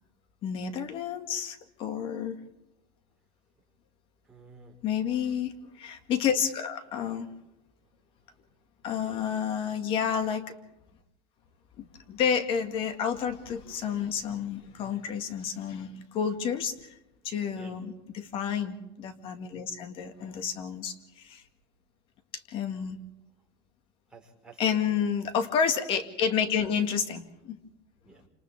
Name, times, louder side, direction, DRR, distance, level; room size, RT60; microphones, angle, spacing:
voice 1, 0.4-2.4 4.8-7.3 8.8-10.6 11.8-17.0 17.2-21.4 22.3-23.0 24.6-27.6, left 7 dB, 45° left, 8 dB, 2.1 m, -30 dB
voice 2, 4.2-4.8 8.9-9.3 17.5-17.8 24.1-24.8 28.0-28.3, right 3 dB, 5° right, -2 dB, 5.0 m, -52 dB
28.5 x 27.0 x 3.6 m, 0.92 s
supercardioid pair, 145°, 13 cm